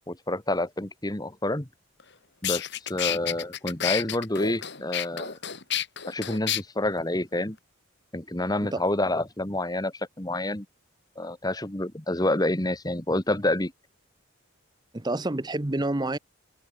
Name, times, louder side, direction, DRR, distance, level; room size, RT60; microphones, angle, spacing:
voice 1, 0.1-1.7 2.4-2.6 2.9-5.4 6.1-7.6 8.1-10.6 11.2-13.7, left 1 dB, 20° left, 1.4 m, -28 dB
sound 1, 2.0-2.1 2.4-6.6, left 10 dB, 55° left, 3.3 m, -30 dB
voice 2, 14.9-16.2, right 2 dB, 20° right, 0.8 m, -28 dB
head